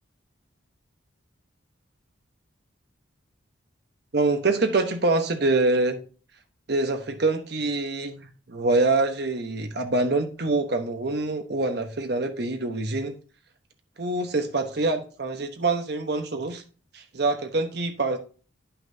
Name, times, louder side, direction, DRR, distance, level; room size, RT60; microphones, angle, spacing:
voice 1, 4.1-6.0 6.7-13.1 14.0-16.6 16.9-18.2, right 2 dB, 55° right, 1.0 m, -25 dB
9.9 x 5.8 x 2.7 m
head